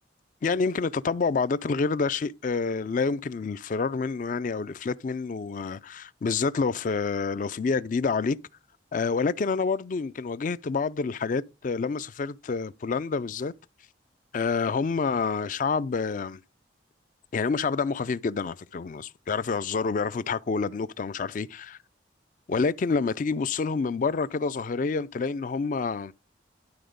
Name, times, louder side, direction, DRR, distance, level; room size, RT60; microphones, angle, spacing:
voice 1, 0.4-8.4 8.9-13.5 14.3-16.4 17.3-21.8 22.5-26.1, left 4 dB, 45° left, 0.3 m, -28 dB
11.5 x 3.9 x 5.1 m
head